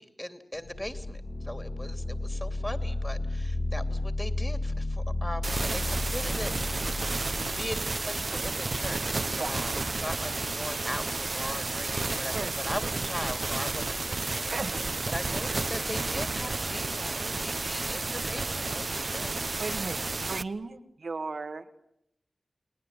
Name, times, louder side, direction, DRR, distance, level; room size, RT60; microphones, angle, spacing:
voice 1, 0.0-6.5 7.6-19.6, left 1 dB, 15° left, 8 dB, 3.1 m, -39 dB
sound 1, 0.5-8.3, left 2 dB, 55° left, 2.1 m, -33 dB
sound 2, 5.4-20.4, right 3 dB, 55° right, 1.0 m, -31 dB
voice 2, 19.6-20.0 20.3-21.8, right 4 dB, 80° right, 6 dB, 1.9 m, -35 dB
30.0 x 20.5 x 9.1 m, 0.78 s
cardioid pair, 50°, 0 cm